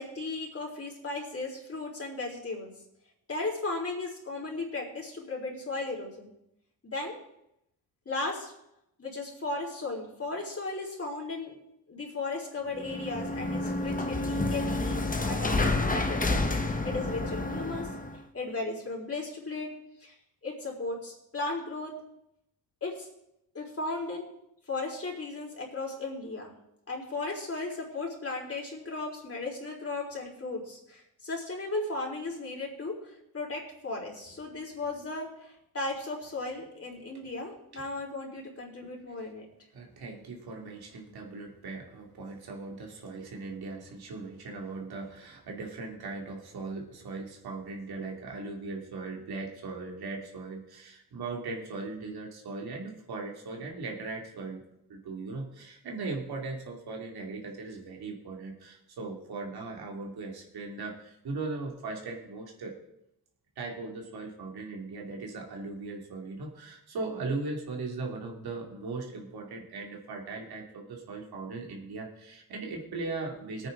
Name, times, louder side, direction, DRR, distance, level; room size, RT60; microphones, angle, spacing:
voice 1, 0.0-2.7 3.3-6.3 6.8-7.2 8.1-8.5 9.0-11.5 11.9-16.2 16.6-17.9 18.3-19.7 20.0-20.1 20.4-21.9 22.8-23.1 23.5-24.3 24.7-26.5 26.9-39.4, left 3 dB, 40° left, -2 dB, 4.1 m, -36 dB
sound 1, 12.7-18.2, left 2 dB, 20° left, 1.2 m, -29 dB
voice 2, 39.7-54.6 54.9-62.8 63.6-73.7, right 3 dB, 90° right, 1 dB, 2.5 m, -38 dB
19.0 x 9.1 x 3.8 m, 0.81 s
cardioid pair, 85°, 36 cm